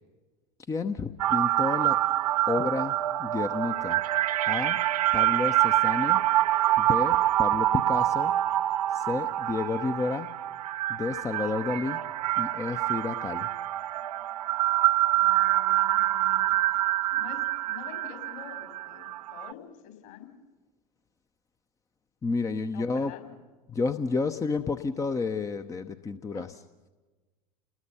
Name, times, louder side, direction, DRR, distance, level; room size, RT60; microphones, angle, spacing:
voice 1, 0.7-2.0 2.5-4.0 4.5-4.8 5.1-6.2 6.8-8.4 8.9-10.3 10.9-12.0 12.4-13.5 22.2-23.1 23.7-26.5, left 4 dB, 15° left, 9 dB, 0.9 m, -31 dB
sound 1, 1.2-19.5, right 14 dB, 65° right, 0.7 m, -26 dB
voice 2, 15.1-16.5 17.1-20.3 22.7-23.2 26.3-26.4, left 10 dB, 50° left, 7 dB, 4.7 m, -46 dB
30.0 x 20.5 x 5.6 m, 1.2 s
figure-of-eight pair, 85°, 21 cm